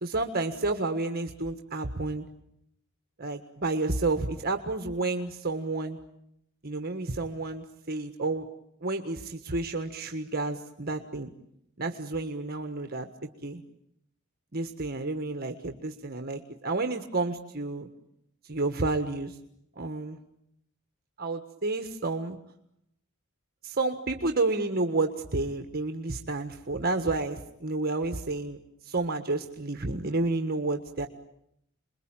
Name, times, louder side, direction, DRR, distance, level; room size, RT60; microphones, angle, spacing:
voice 1, 0.0-2.2 3.2-6.0 6.6-8.5 8.8-11.3 11.8-13.1 13.4-13.6 14.5-17.9 18.4-19.4 19.8-20.2 21.2-22.4 23.6-28.6 28.8-31.1, right 2 dB, 45° right, 6 dB, 1.5 m, -30 dB
29.0 x 22.0 x 9.0 m, 0.77 s
head